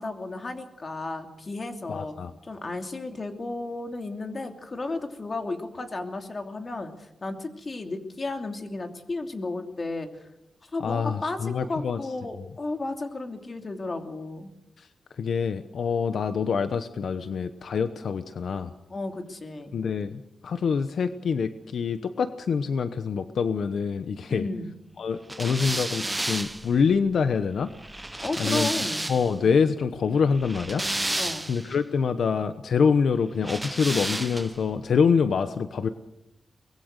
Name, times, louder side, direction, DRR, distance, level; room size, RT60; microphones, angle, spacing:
voice 1, 0.0-2.1 2.4-6.9 7.2-10.1 10.6-14.5 18.9-19.7 24.3-24.7 28.2-29.1 31.2-31.5, left 2 dB, 35° left, 5 dB, 2.9 m, -33 dB
voice 2, 1.9-2.3 10.8-12.0 14.8-14.9 15.2-18.7 19.7-24.5 25.0-27.7 28.4-28.7 29.1-31.2 31.5-35.9, left 6 dB, 75° left, 10 dB, 1.0 m, -25 dB
sound 1, 25.3-29.4 30.3-31.8 33.4-34.7, right 1 dB, 15° right, 0.8 m, -31 dB
24.0 x 21.0 x 6.6 m, 0.86 s
wide cardioid pair, 100°, 0 cm